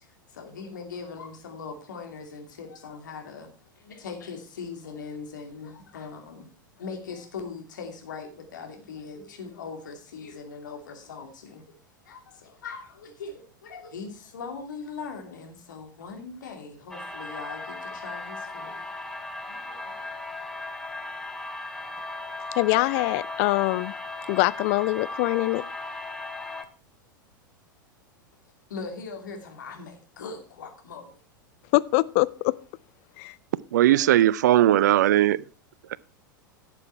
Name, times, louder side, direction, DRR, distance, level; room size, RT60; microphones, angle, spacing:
voice 1, 0.3-3.5 3.8-6.5 6.8-11.8 12.0-18.9 19.5-20.0 28.7-31.2, left 5 dB, 65° left, 2.6 m, -40 dB
sound 1, 16.9-26.7, left 2 dB, 5° left, 1.2 m, -37 dB
voice 2, 22.6-23.9 24.3-25.6 31.7-32.5 33.2-33.3, left 22 dB, 45° left, 0.4 m, -23 dB
voice 3, 33.7-35.4, right 13 dB, 60° right, 0.5 m, -18 dB
11.5 x 7.7 x 4.6 m
figure-of-eight pair, 90°, 11 cm